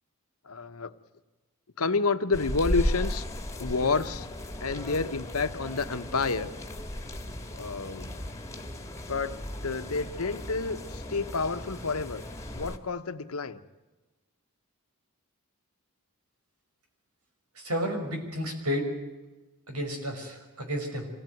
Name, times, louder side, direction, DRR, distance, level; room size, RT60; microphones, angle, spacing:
voice 1, 0.5-0.9 1.8-3.2 3.6-4.3 4.6-6.5 7.5-8.3 9.1-9.4 9.6-12.2 12.5-13.6, left 4 dB, 75° left, 11 dB, 1.1 m, -29 dB
sound 1, 2.3-12.8, left 1 dB, 15° left, 1.6 m, -36 dB
voice 2, 17.6-18.9 19.7-21.1, equal, 85° right, 4 dB, 5.7 m, -31 dB
25.0 x 16.5 x 9.3 m, 1.1 s
head